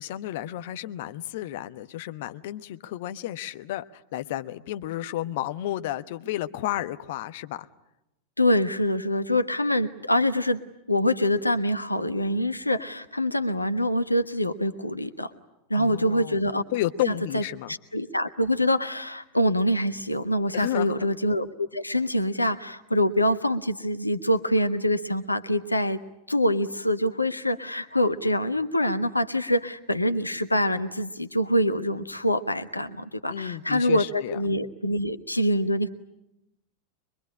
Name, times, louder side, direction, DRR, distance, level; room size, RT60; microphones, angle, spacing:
voice 1, 0.0-7.7 15.7-16.4 16.7-17.7 20.5-21.1 33.3-34.4, left 13 dB, 50° left, 10 dB, 1.0 m, -32 dB
voice 2, 8.4-10.6 10.9-15.3 15.7-16.6 17.3-17.4 17.7-26.0 26.3-35.9, left 1 dB, 85° left, 10 dB, 1.1 m, -25 dB
24.5 x 22.5 x 9.8 m, 0.88 s
figure-of-eight pair, 90°, 0 cm